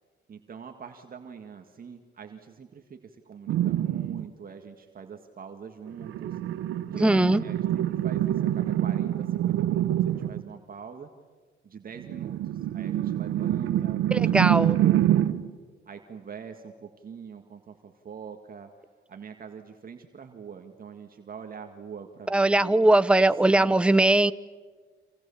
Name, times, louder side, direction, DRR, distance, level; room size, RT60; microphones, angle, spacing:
voice 1, 0.3-6.4 6.9-11.1 11.6-15.3 15.9-18.7 19.1-22.9 23.5-24.0, right 6 dB, 45° right, 5 dB, 2.0 m, -44 dB
sound 1, 3.5-4.3 5.9-10.5 12.0-15.5, right 12 dB, 90° right, 1.2 m, -26 dB
voice 2, 7.0-7.4 14.1-14.8 22.3-24.3, right 2 dB, 5° right, 15 dB, 0.7 m, -20 dB
30.0 x 27.0 x 7.2 m, 1.5 s
cardioid pair, 90°, 20 cm